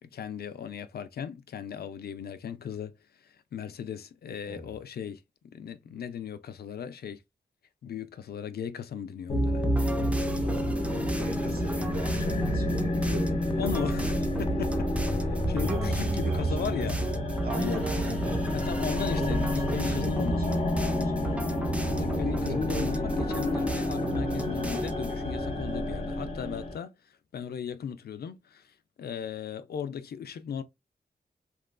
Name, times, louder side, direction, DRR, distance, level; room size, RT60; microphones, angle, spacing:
voice 1, 0.0-2.9 3.2-5.2 5.5-7.2 7.8-9.6 13.6-17.0 17.6-17.8 18.5-20.5 21.9-26.9 27.3-30.6, left 7 dB, 70° left, 0.4 m, -36 dB
voice 2, 4.4-4.7 10.0-13.5 15.4-18.5 19.2-21.3 21.8-23.0, right 2 dB, 65° right, 1.3 m, -39 dB
sound 1, 9.3-26.8, left 1 dB, 40° left, 0.7 m, -29 dB
sound 2, 9.6-25.2, right 1 dB, 5° right, 0.5 m, -37 dB
2.9 x 2.4 x 2.2 m
cardioid pair, 75°, 17 cm